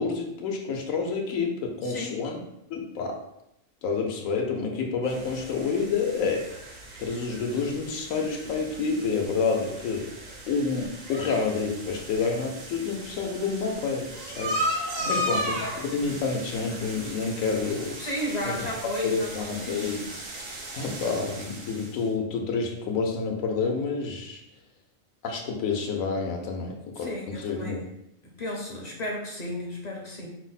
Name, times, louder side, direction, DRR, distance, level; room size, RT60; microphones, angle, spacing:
voice 1, 0.0-2.4 2.7-3.2 3.8-6.5 7.0-10.1 10.5-17.9 18.4-18.6 18.8-20.0 20.7-24.4 25.2-27.8, left 4 dB, 85° left, 1 dB, 1.1 m, -29 dB
voice 2, 1.8-2.2 15.0-15.6 18.0-20.1 20.8-20.9 27.0-27.9 28.2-30.3, left 1 dB, 45° left, -1 dB, 0.6 m, -34 dB
baby water, 5.0-22.0, equal, 75° right, 1.3 m, -36 dB
4.7 x 2.0 x 4.0 m, 0.82 s
omnidirectional pair, 1.4 m